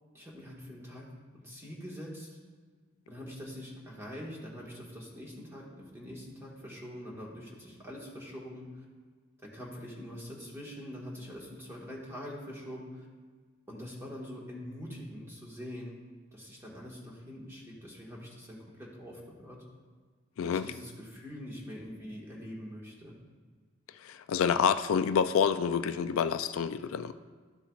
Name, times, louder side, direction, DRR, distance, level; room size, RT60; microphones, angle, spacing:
voice 1, 0.1-1.0 1.3-2.4 3.1-8.8 9.4-13.1 13.7-16.0 16.3-19.6 20.4-23.1, equal, 10° right, -4 dB, 1.6 m, -44 dB
voice 2, 20.4-20.7 24.0-27.1, left 7 dB, 80° left, 11 dB, 0.3 m, -28 dB
12.5 x 7.1 x 2.4 m, 1.5 s
head